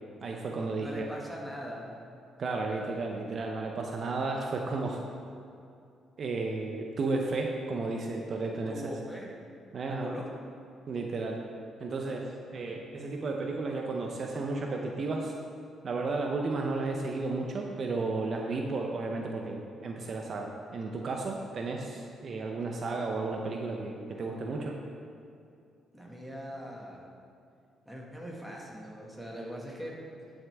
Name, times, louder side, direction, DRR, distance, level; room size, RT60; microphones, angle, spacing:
voice 1, 0.2-1.1 2.4-5.0 6.2-8.8 9.7-10.2 10.9-11.4 11.8-15.3 15.8-24.8, right 3 dB, 50° right, 1 dB, 0.7 m, -33 dB
voice 2, 0.7-2.0 8.7-9.3 9.9-10.3 25.9-27.0 27.9-30.0, equal, ahead, -3 dB, 2.0 m, -41 dB
12.5 x 6.4 x 3.6 m, 2.5 s
cardioid pair, 90°, 0 cm